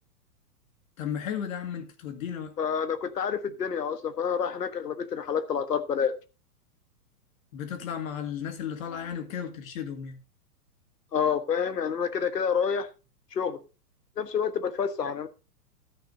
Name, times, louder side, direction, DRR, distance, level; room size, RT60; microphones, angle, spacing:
voice 1, 1.0-2.5 7.5-10.2, left 8 dB, 60° left, 2.2 m, -34 dB
voice 2, 2.6-6.1 11.1-12.9 13.3-13.6 14.2-15.3, left 7 dB, 85° left, 1.3 m, -28 dB
13.0 x 9.3 x 2.7 m
hypercardioid pair, 120°, 47 cm